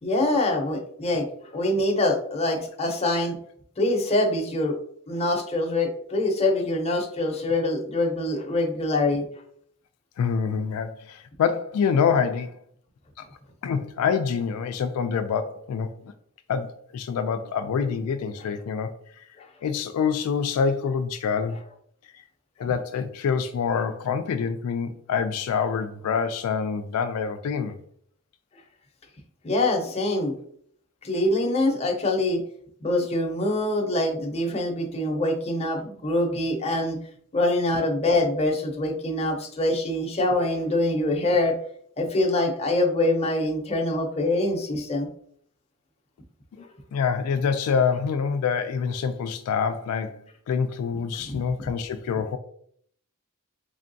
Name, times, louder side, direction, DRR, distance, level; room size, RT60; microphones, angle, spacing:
voice 1, 0.0-3.4 3.8-4.8 5.1-9.2 19.4-19.5 22.6-22.7 29.4-30.4 31.0-32.4 32.8-37.0 37.3-41.6 42.0-45.1 46.6-46.7, left 2 dB, 30° left, 1 dB, 0.7 m, -24 dB
voice 2, 10.2-12.6 13.2-13.3 13.6-16.1 16.5-19.2 19.6-21.6 22.6-27.8 46.9-52.4, left 6 dB, 75° left, 8 dB, 0.3 m, -26 dB
3.7 x 3.3 x 2.6 m, 0.63 s
head